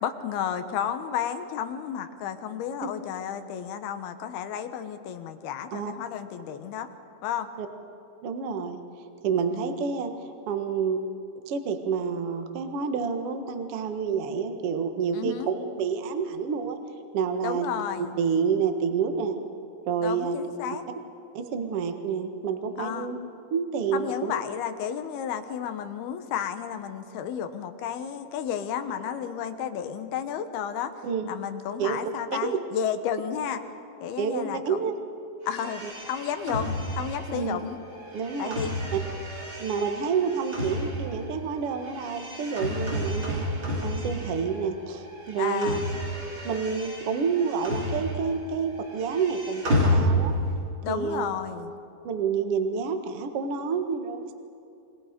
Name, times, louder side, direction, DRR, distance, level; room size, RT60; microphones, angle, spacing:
voice 1, 0.0-6.9 7.2-7.5 9.5-9.7 15.1-15.5 17.4-18.2 20.0-20.8 22.8-23.1 23.9-30.9 31.3-33.6 34.0-34.8 35.4-37.8 38.4-38.8 42.7-42.9 45.4-45.9 50.8-51.7, left 8 dB, 70° left, 8 dB, 2.9 m, -32 dB
voice 2, 8.2-8.8 9.2-10.1 10.5-11.0 11.5-16.8 17.1-17.7 18.2-19.4 19.9-20.4 21.3-23.2 23.5-24.3 31.0-31.3 31.8-32.0 32.4-32.5 34.2-34.9 35.8-35.9 37.3-37.7 38.1-38.6 38.9-39.0 39.6-43.4 43.8-45.8 46.4-50.4 50.9-51.3 52.0-54.3, right 6 dB, 75° right, 6 dB, 1.3 m, -28 dB
sound 1, 35.5-44.7 45.0-48.5 48.7-50.6, equal, 30° right, 4.1 m, -31 dB
28.0 x 22.0 x 5.2 m, 2.6 s
omnidirectional pair, 5.0 m